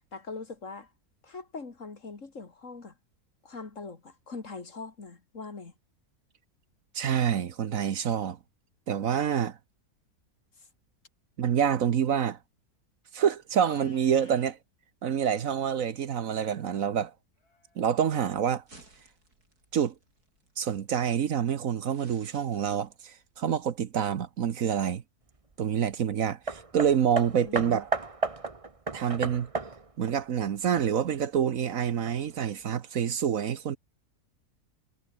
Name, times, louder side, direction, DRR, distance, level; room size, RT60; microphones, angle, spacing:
voice 1, 0.1-0.9 1.2-2.9 3.4-5.7 10.6-10.7 27.0-27.7, left 4 dB, 55° left, 2.9 m, -42 dB
voice 2, 6.9-8.4 8.9-9.6 11.4-12.4 13.1-14.6 15.0-17.1 17.8-18.6 19.7-19.9 20.6-25.0 25.6-27.9 28.9-29.5 30.0-33.8, right 8 dB, 65° right, 1.3 m, -27 dB
Livestock farm animals working animals, 13.5-14.5 17.4-18.3, left 3 dB, 80° left, 4.0 m, -56 dB
sound 1, 18.6-23.7, right 2 dB, 80° right, 6.5 m, -59 dB
Hammer, 26.5-31.2 32.0-32.1, right 3 dB, 20° right, 1.4 m, -34 dB
omnidirectional pair, 1.6 m